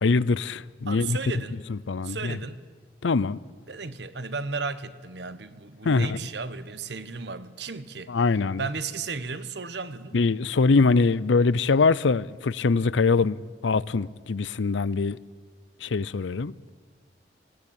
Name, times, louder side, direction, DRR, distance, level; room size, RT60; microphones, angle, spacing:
voice 1, 0.0-1.2 1.7-2.4 3.0-3.4 5.8-6.2 8.1-8.6 10.1-13.4 13.6-15.2 15.8-16.7, left 4 dB, 90° left, 0.6 m, -23 dB
voice 2, 0.9-1.6 2.0-2.6 3.7-8.1 8.6-10.2, right 4 dB, 70° right, 1.1 m, -34 dB
20.0 x 17.5 x 8.6 m
head